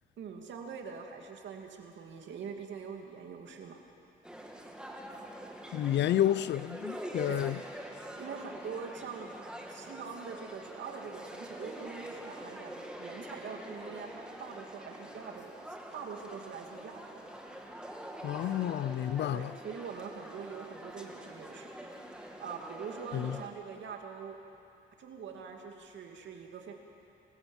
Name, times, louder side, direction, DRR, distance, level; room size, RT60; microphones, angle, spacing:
voice 1, 0.2-3.8 7.3-7.5 8.0-9.4 9.7-15.5 15.9-17.2 19.3-22.0 22.4-24.4 25.0-26.7, right 6 dB, 70° right, 2.6 m, -44 dB
sound 1, 4.2-23.5, right 1 dB, 5° right, 2.3 m, -45 dB
voice 2, 5.7-7.6 18.2-19.5 23.1-23.4, left 11 dB, 60° left, 0.6 m, -30 dB
26.5 x 15.0 x 7.3 m
cardioid pair, 90°, 20 cm